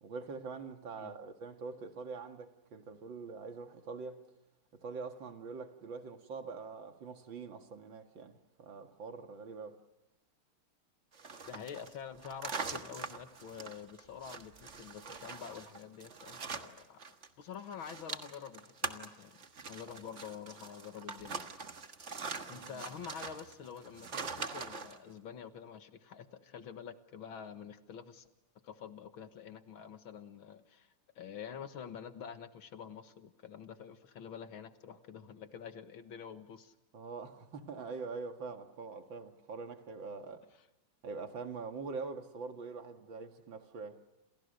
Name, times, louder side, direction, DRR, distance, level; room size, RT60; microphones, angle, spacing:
voice 1, 0.0-4.3 4.7-9.8 22.5-22.8 36.9-40.5 41.0-44.0, right 4 dB, 60° right, 2.5 m, -44 dB
sound 1, 11.1-17.3 17.5-25.0, right 4 dB, 35° right, 1.6 m, -43 dB
voice 2, 11.5-21.5 22.5-28.3 28.6-36.7, left 7 dB, 70° left, 2.2 m, -47 dB
29.0 x 28.0 x 6.7 m
omnidirectional pair, 2.4 m